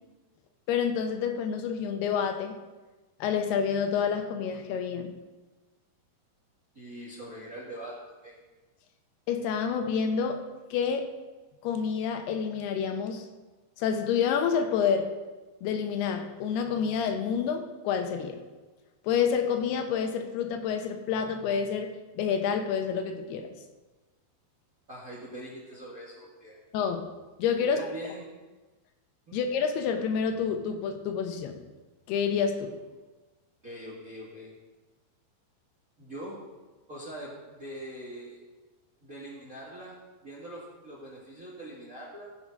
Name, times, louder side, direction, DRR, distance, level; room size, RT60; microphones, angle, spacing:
voice 1, 0.7-2.6 3.2-5.1 9.3-10.4 10.7-11.1 11.6-13.3 13.8-15.1 15.6-18.4 19.0-23.5 26.7-27.1 27.4-27.9 29.3-31.6 32.1-32.8, left 7 dB, 80° left, 6 dB, 2.9 m, -28 dB
voice 2, 6.7-8.3 24.9-26.6 27.6-28.2 29.3-29.4 33.6-34.5 36.0-36.4 36.9-38.4 39.0-42.3, right 1 dB, 40° right, -4 dB, 1.3 m, -42 dB
15.0 x 6.8 x 5.2 m, 1.2 s
omnidirectional pair, 4.6 m